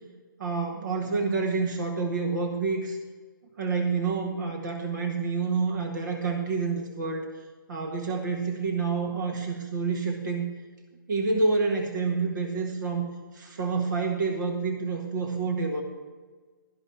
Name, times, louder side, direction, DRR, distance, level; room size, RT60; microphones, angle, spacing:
voice 1, 0.4-3.0 3.6-7.3 7.7-10.4 11.1-13.1 13.3-15.8, right 4 dB, 55° right, 2 dB, 1.7 m, -28 dB
13.0 x 5.4 x 7.7 m, 1.4 s
figure-of-eight pair, 145°, 12 cm